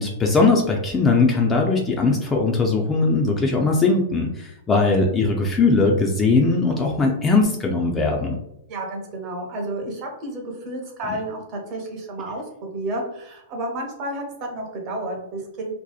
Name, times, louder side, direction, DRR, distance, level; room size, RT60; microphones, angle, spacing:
voice 1, 0.0-8.4, left 3 dB, 15° left, 0 dB, 0.3 m, -20 dB
voice 2, 8.7-15.7, right 1 dB, 35° right, 1 dB, 0.7 m, -31 dB
2.6 x 2.0 x 2.3 m, 0.79 s
hypercardioid pair, 150°, 0 cm